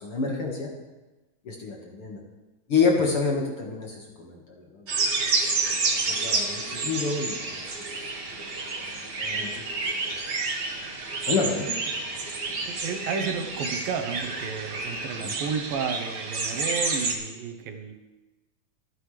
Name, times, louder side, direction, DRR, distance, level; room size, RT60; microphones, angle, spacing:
voice 1, 0.0-0.7 1.5-2.2 2.7-4.9 5.3-5.6 6.1-7.6 9.2-9.6 11.2-11.7 15.2-15.3, left 4 dB, 50° left, 0 dB, 2.1 m, -28 dB
sound 1, 4.9-17.1, right 3 dB, 45° right, 1.4 m, -29 dB
voice 2, 11.7-12.0 12.7-17.9, right 6 dB, 80° right, 5 dB, 2.8 m, -32 dB
25.0 x 9.7 x 3.3 m, 1.1 s
omnidirectional pair, 4.0 m